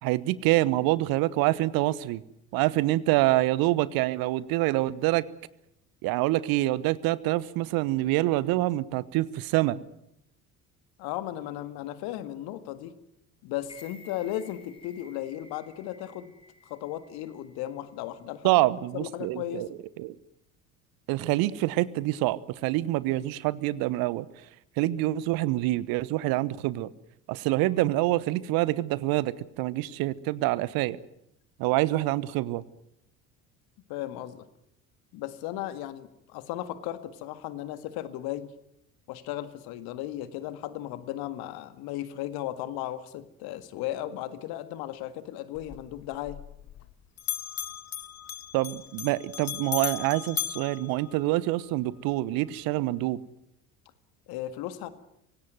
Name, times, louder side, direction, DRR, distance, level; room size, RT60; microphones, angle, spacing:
voice 1, 0.0-2.2 2.5-5.2 6.0-9.8 18.4-19.7 20.0-20.2 21.1-24.3 24.8-26.9 27.3-31.0 31.6-32.6 48.5-53.2, right 17 dB, 55° right, 20 dB, 1.1 m, -26 dB
voice 2, 11.0-12.9 13.4-16.4 16.6-18.5 18.9-19.7 33.9-34.5 35.1-38.5 39.1-46.4 54.3-54.9, left 13 dB, 60° left, 12 dB, 1.9 m, -36 dB
sound 1, 13.6-17.8 18.1-18.2, left 3 dB, 10° left, 6.6 m, -54 dB
Bell, 45.5-46.9 47.2-51.7, left 12 dB, 35° left, 1.0 m, -37 dB
25.5 x 17.5 x 9.3 m, 0.79 s
figure-of-eight pair, 60°, 43 cm